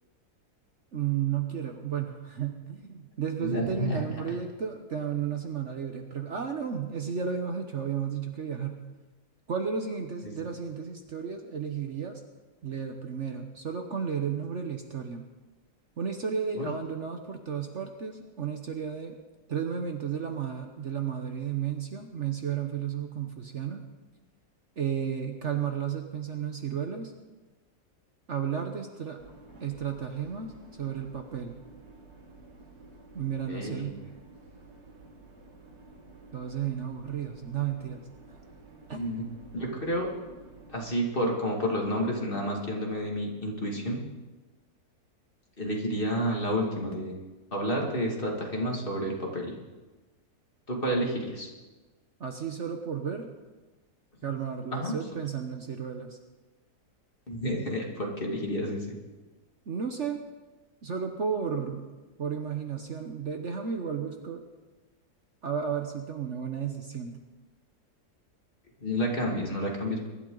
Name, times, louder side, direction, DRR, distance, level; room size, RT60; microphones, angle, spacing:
voice 1, 0.9-8.8 9.5-12.2 12.6-15.2 16.0-19.2 19.5-23.8 24.8-27.1 28.3-29.2 29.6-31.6 33.1-34.0 36.3-38.1 38.9-39.1 52.2-53.3 54.2-56.2 59.7-60.2 60.8-61.9 62.2-64.4 65.4-67.2, right 7 dB, 50° right, 5 dB, 1.2 m, -33 dB
voice 2, 3.4-4.0 10.2-10.3 16.6-16.7 33.5-33.9 38.9-39.2 39.5-40.1 40.7-44.0 45.6-47.1 47.5-49.5 50.7-51.5 54.2-54.3 54.7-55.0 57.3-59.0 68.8-70.1, equal, 35° left, -1 dB, 2.5 m, -30 dB
sound 1, 29.2-40.8, right 2 dB, 70° right, 2.3 m, -52 dB
23.0 x 12.0 x 3.9 m, 1.2 s
omnidirectional pair, 1.7 m